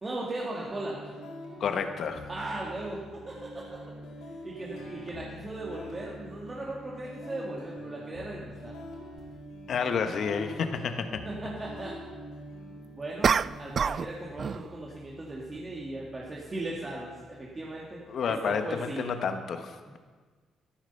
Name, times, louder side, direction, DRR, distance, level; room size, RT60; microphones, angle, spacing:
voice 1, 0.0-1.0 2.3-3.8 4.4-8.7 11.2-11.9 13.0-19.1, right 2 dB, 30° right, -3 dB, 2.2 m, -37 dB
sound 1, 0.7-18.7, equal, 85° left, 3.5 m, -46 dB
voice 2, 1.6-2.2 9.7-11.2 18.1-20.0, left 6 dB, 60° left, 8 dB, 1.1 m, -30 dB
sound 2, 9.2-9.3 13.2-14.1 14.4-14.7, right 6 dB, 45° right, 0.3 m, -26 dB
13.5 x 12.0 x 5.6 m, 1.4 s
cardioid pair, 90°, 0 cm